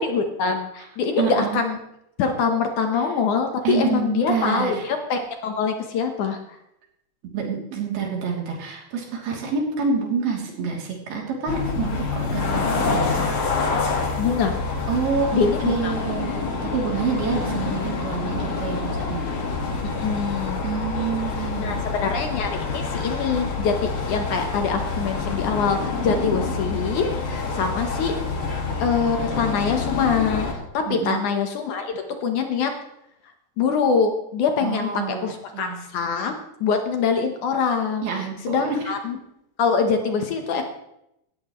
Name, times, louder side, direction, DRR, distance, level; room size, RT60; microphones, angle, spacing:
voice 1, 0.0-1.8 2.2-6.4 14.2-14.6 15.3-15.9 20.0-20.6 21.6-28.1 28.5-30.5 30.7-32.7 33.6-36.3 36.6-39.2 39.6-40.6, left 5 dB, 65° left, 5 dB, 2.2 m, -24 dB
voice 2, 1.2-1.6 2.9-3.0 3.6-4.8 7.3-13.3 14.9-16.5 16.7-19.3 20.6-21.9 26.0-26.5 30.9-31.3 34.6-35.9 38.0-38.8, right 5 dB, 80° right, -1 dB, 5.0 m, -27 dB
sound 1, 11.5-30.5, left 4 dB, 45° left, 2.2 m, -27 dB
18.5 x 13.0 x 3.1 m, 0.81 s
omnidirectional pair, 4.3 m